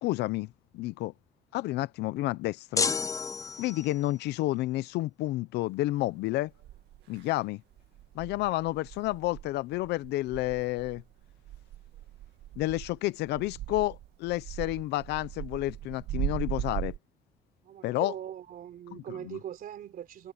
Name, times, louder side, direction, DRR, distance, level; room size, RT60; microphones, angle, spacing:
voice 1, 0.0-0.5 0.7-1.1 1.5-2.9 3.6-6.5 7.1-7.6 8.1-11.0 12.6-16.9 17.8-18.1 19.3-19.4, left 17 dB, 85° left, 0.7 m, -30 dB
sound 1, 2.8-4.1, left 5 dB, 20° left, 0.4 m, -30 dB
sound 2, 6.0-6.1 6.6-7.3 7.7-17.0, right 14 dB, 80° right, 2.1 m, -39 dB
voice 2, 17.6-20.3, right 10 dB, 60° right, 3.8 m, -41 dB
cardioid pair, 110°, 17 cm